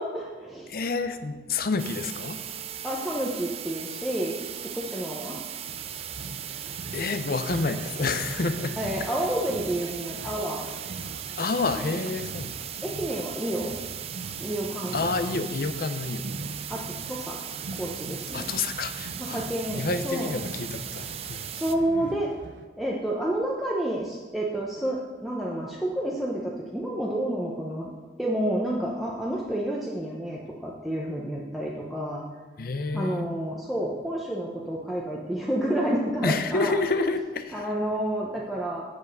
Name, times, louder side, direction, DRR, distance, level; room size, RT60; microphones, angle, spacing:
voice 1, 0.0-0.7 2.8-5.4 8.8-10.7 11.8-12.0 12.8-13.7 14.4-15.3 16.7-17.4 17.7-18.5 19.2-20.3 21.5-22.3 22.8-27.9 28.2-32.2 32.9-36.7 37.5-38.8, right 1 dB, ahead, -5 dB, 0.9 m, -30 dB
voice 2, 0.7-2.4 6.9-8.8 11.4-12.5 14.9-16.2 18.3-19.5 19.7-21.5 32.6-33.3 36.2-37.6, left 3 dB, 55° left, 10 dB, 0.6 m, -29 dB
sound 1, 1.8-21.8, right 10 dB, 35° right, 0.4 m, -38 dB
sound 2, 5.7-22.7, right 2 dB, 85° right, 0.7 m, -42 dB
8.1 x 7.0 x 6.6 m, 1.3 s
head